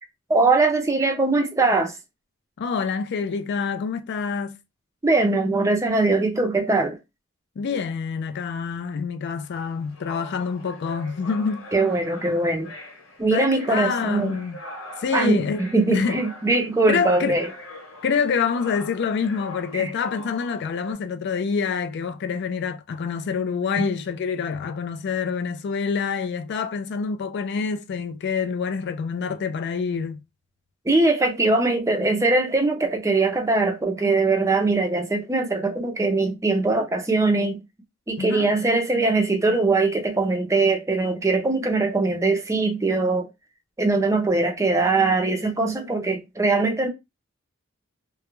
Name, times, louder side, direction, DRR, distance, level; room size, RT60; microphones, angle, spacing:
voice 1, 0.3-2.0 5.0-7.0 11.7-12.7 13.2-14.4 15.1-17.5 19.7-19.9 30.8-37.6 38.1-43.3 43.8-46.9, right 3 dB, 15° right, 0.5 m, -21 dB
voice 2, 2.6-4.6 7.6-11.7 13.3-14.6 15.0-15.6 15.9-16.2 16.9-17.4 18.0-30.2 38.2-38.5, left 5 dB, 55° left, 0.3 m, -26 dB
sound 1, 9.5-20.9, left 1 dB, 70° left, 1.0 m, -42 dB
2.3 x 2.0 x 2.9 m
head